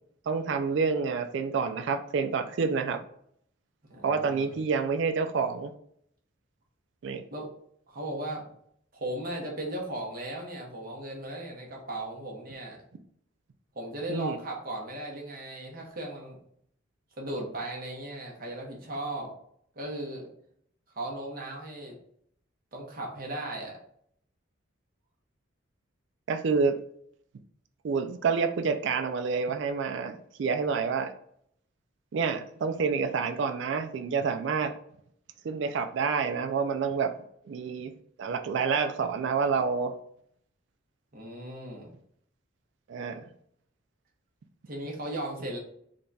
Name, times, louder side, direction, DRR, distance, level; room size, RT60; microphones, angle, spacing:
voice 1, 0.3-3.0 4.0-5.7 7.0-7.2 14.1-14.4 26.3-26.8 27.8-31.1 32.1-34.7 35.4-37.1 37.5-37.9 38.2-40.0 42.9-43.2, right 5 dB, 65° right, 7 dB, 0.3 m, -28 dB
voice 2, 3.9-4.5 7.3-7.5 7.9-8.4 8.9-12.8 13.7-16.4 17.2-19.3 19.8-20.3 20.9-22.0 22.7-23.8 41.1-41.9 44.7-45.6, right 1 dB, 45° right, -1 dB, 0.9 m, -37 dB
3.7 x 2.2 x 3.8 m, 0.67 s
head